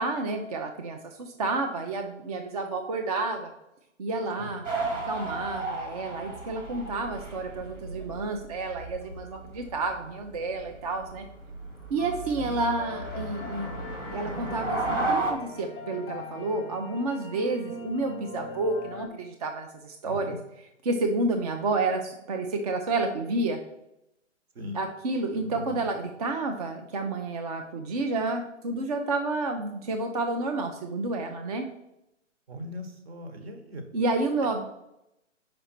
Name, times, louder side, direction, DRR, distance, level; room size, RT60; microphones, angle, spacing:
voice 1, 0.0-3.5 4.0-4.7 5.1-11.3 11.9-13.7 14.1-20.4 20.8-23.6 24.7-31.6 33.9-34.7, right 3 dB, 35° right, 4 dB, 0.4 m, -30 dB
sound 1, 4.6-15.3, right 2 dB, 80° right, 2.4 m, -34 dB
sound 2, 12.0-19.1, left 2 dB, 15° left, 0.6 m, -42 dB
voice 2, 20.0-20.4 24.5-24.8 25.3-25.9 32.5-33.8, left 1 dB, 55° right, 7 dB, 1.3 m, -39 dB
5.3 x 5.1 x 4.4 m, 0.86 s
hypercardioid pair, 135°, 37 cm